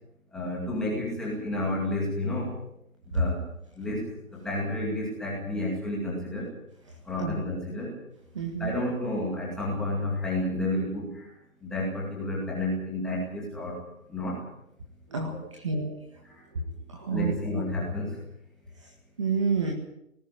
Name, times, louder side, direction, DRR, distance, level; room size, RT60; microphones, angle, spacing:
voice 1, 0.3-2.6 3.1-3.4 3.7-4.0 4.3-6.5 7.0-7.9 8.6-11.3 11.6-13.8 14.1-14.5 15.1-15.4 16.2-16.4 17.1-18.2, left 1 dB, ahead, -5 dB, 2.2 m, -31 dB
voice 2, 8.3-8.7 15.1-15.3 15.6-16.0 17.0-17.3 19.2-19.7, right 5 dB, 20° right, 2 dB, 1.7 m, -28 dB
18.5 x 16.0 x 8.7 m, 0.80 s
hypercardioid pair, 175°, 42 cm